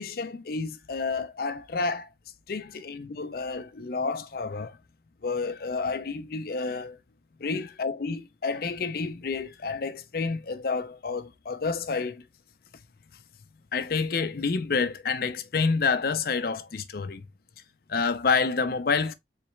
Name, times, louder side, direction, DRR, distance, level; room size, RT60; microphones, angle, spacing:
voice 1, 0.0-2.1 2.5-4.8 5.2-7.0 7.4-12.2 13.7-17.2 17.9-19.1, left 4 dB, 55° left, 0.5 m, -29 dB
3.9 x 3.3 x 3.1 m
head